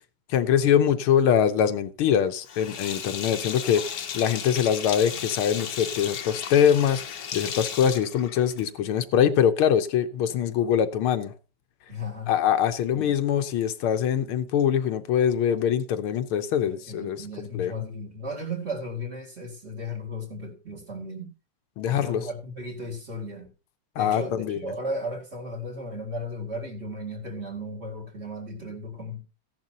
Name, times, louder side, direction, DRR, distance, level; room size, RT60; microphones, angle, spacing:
voice 1, 0.3-11.3 12.3-17.2 17.5-17.8 21.8-22.2 24.0-24.6, left 9 dB, 85° left, 1.7 m, -23 dB
Sink (filling or washing), 2.5-8.9, left 8 dB, 55° left, 1.2 m, -35 dB
voice 2, 11.9-12.3 12.9-13.1 16.6-21.3 21.8-23.5 24.0-29.2, left 1 dB, 30° right, 2.2 m, -35 dB
15.0 x 10.5 x 2.8 m
omnidirectional pair, 2.3 m